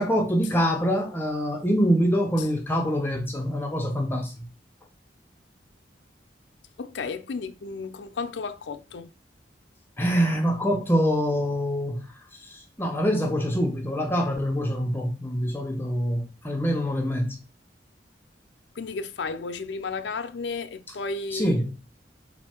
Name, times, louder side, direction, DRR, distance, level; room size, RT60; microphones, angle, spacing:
voice 1, 0.0-4.5 10.0-17.4 21.3-21.8, equal, 10° left, 0.6 m, -25 dB
voice 2, 6.8-9.1 18.7-21.6, left 4 dB, 80° left, 0.5 m, -33 dB
4.3 x 2.7 x 4.2 m
head